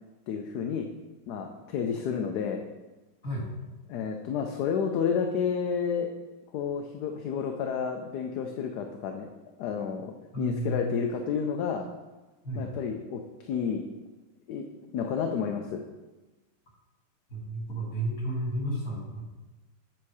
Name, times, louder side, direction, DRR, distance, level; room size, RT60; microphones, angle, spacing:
voice 1, 0.3-0.9 1.3-2.6 3.9-6.1 6.5-9.3 9.6-11.9 12.5-13.8 14.5-14.7 14.9-15.8, left 6 dB, 75° left, 3 dB, 1.2 m, -30 dB
voice 2, 10.3-10.9 12.4-12.7 17.3-19.3, right 1 dB, 60° left, -2 dB, 2.6 m, -32 dB
8.8 x 4.6 x 4.7 m, 1.2 s
omnidirectional pair, 1.8 m